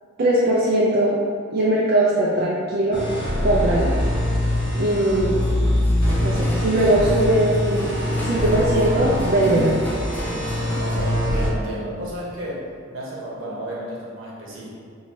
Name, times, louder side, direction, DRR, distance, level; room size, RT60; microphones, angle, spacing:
voice 1, 0.2-1.2 1.5-3.1 3.4-4.0 4.7-5.4 6.2-7.9 8.2-9.7, right 1 dB, 50° right, -6 dB, 0.4 m, -20 dB
sound 1, 2.9-11.5, left 1 dB, 70° left, 1.5 m, -23 dB
sound 2, 5.4-11.0, equal, 10° left, 0.4 m, -34 dB
voice 2, 10.8-14.7, right 1 dB, 70° right, -6 dB, 1.0 m, -32 dB
4.4 x 2.7 x 2.8 m, 2.2 s
head